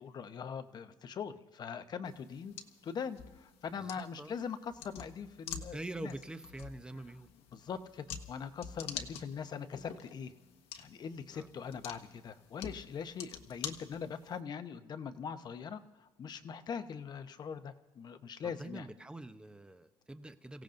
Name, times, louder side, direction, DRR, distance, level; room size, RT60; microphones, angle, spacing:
voice 1, 0.0-2.5 2.8-6.1 7.5-10.3 10.8-18.9, left 6 dB, 40° left, 9 dB, 0.9 m, -42 dB
sound 1, 2.0-14.4, left 7 dB, 70° left, 1.4 m, -48 dB
voice 2, 3.8-4.3 5.7-7.3 11.3-11.5 18.4-20.6, right 2 dB, 10° right, 9 dB, 0.8 m, -45 dB
29.5 x 16.5 x 2.6 m, 1.2 s
cardioid pair, 130°, 11 cm